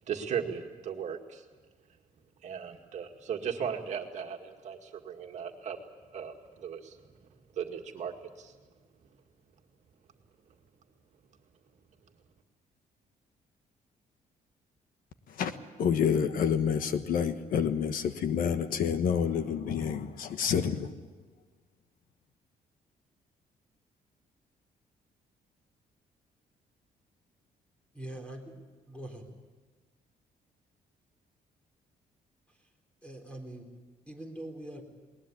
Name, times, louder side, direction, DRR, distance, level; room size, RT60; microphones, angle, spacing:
voice 1, 0.1-1.5 2.4-5.8 6.1-7.0 7.6-8.5, right 7 dB, 50° right, 3 dB, 2.1 m, -37 dB
voice 2, 15.3-20.9, left 7 dB, 70° left, 10 dB, 1.3 m, -28 dB
voice 3, 27.9-28.4 28.9-29.3 32.5-32.7 33.0-33.7 34.1-34.8, right 1 dB, 10° left, 3 dB, 4.0 m, -43 dB
20.5 x 20.0 x 8.5 m, 1.4 s
cardioid pair, 165°, 15 cm